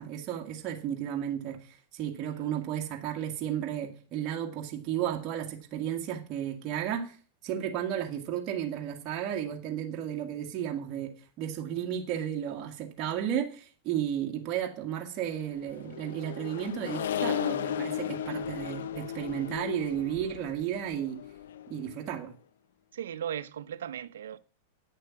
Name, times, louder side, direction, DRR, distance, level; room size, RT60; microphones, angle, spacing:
voice 1, 0.0-7.2 7.4-21.2 21.7-22.3, right 10 dB, 40° right, 1.8 m, -33 dB
Accelerating revving vroom, 15.5-22.1, left 9 dB, 80° left, 0.7 m, -35 dB
voice 2, 22.9-24.4, right 9 dB, 85° right, 0.7 m, -37 dB
9.5 x 6.7 x 5.8 m
hypercardioid pair, 125°, 0 cm